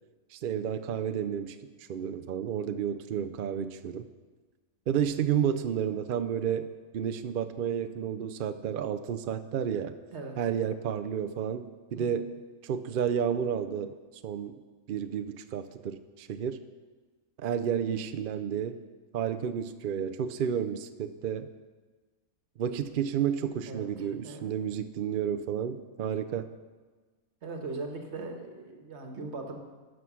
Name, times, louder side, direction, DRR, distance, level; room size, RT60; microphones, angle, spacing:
voice 1, 0.3-1.6 1.9-4.1 4.9-6.7 6.9-10.0 10.4-12.3 12.6-13.9 14.2-14.6 14.9-16.6 17.4-18.8 19.1-21.5 22.6-26.5, right 8 dB, 70° right, 9 dB, 0.5 m, -31 dB
voice 2, 23.7-24.5 27.4-29.6, right 3 dB, 55° right, 4 dB, 1.5 m, -40 dB
12.5 x 6.4 x 6.1 m, 1.3 s
omnidirectional pair, 1.5 m